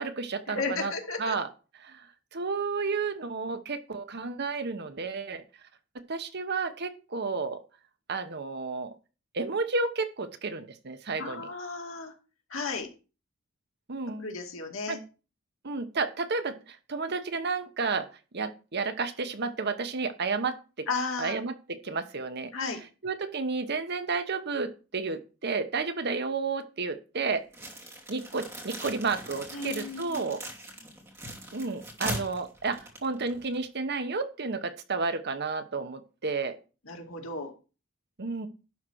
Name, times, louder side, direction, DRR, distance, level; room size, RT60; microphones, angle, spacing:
voice 1, 0.0-0.9 1.2-1.5 1.8-2.1 2.3-5.4 6.1-7.6 8.1-8.9 9.3-11.5 13.9-14.2 14.9-15.0 15.6-18.1 18.3-20.9 21.2-22.5 23.0-27.4 28.1-30.4 31.5-36.6 38.2-38.5, right 4 dB, 55° right, 9 dB, 1.0 m, -31 dB
voice 2, 0.5-1.4 11.2-12.1 12.5-12.9 14.2-15.0 20.9-21.4 22.5-22.8 29.5-30.3 36.9-37.5, left 4 dB, 80° left, 3 dB, 2.3 m, -34 dB
sound 1, 27.5-33.6, right 1 dB, 15° right, 2.9 m, -40 dB
11.5 x 4.4 x 6.3 m, 0.34 s
head